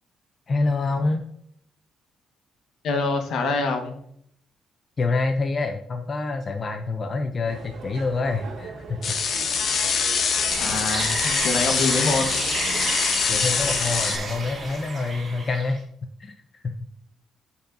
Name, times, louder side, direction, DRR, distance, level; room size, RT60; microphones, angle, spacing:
voice 1, 0.5-1.2 5.0-9.0 9.5-9.6 13.3-15.9 16.2-16.4 16.6-16.7, left 3 dB, 30° left, 6 dB, 0.4 m, -26 dB
voice 2, 2.8-3.9 10.6-12.3, left 3 dB, 65° left, 4 dB, 1.2 m, -25 dB
sound 1, 7.4-13.9, right 4 dB, 60° right, 2.1 m, -40 dB
sound 2, 9.0-14.2, left 6 dB, 50° left, 0.8 m, -24 dB
sound 3, 10.5-15.8, right 3 dB, 30° right, 1.7 m, -31 dB
13.0 x 5.4 x 2.6 m, 0.68 s
cardioid pair, 170°, 0 cm